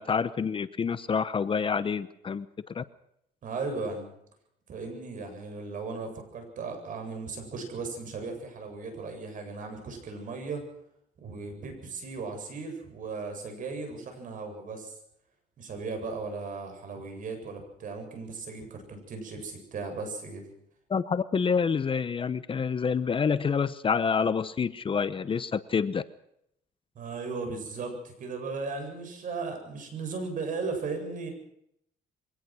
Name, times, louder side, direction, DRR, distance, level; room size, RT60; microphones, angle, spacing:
voice 1, 0.0-2.8 20.9-26.0, left 6 dB, 30° left, 14 dB, 0.9 m, -28 dB
voice 2, 3.4-4.1 4.7-10.6 11.2-14.9 15.6-20.4 26.9-31.3, right 4 dB, 50° right, 5 dB, 7.9 m, -36 dB
23.5 x 18.5 x 6.4 m, 0.74 s
cardioid pair, 110°, 17 cm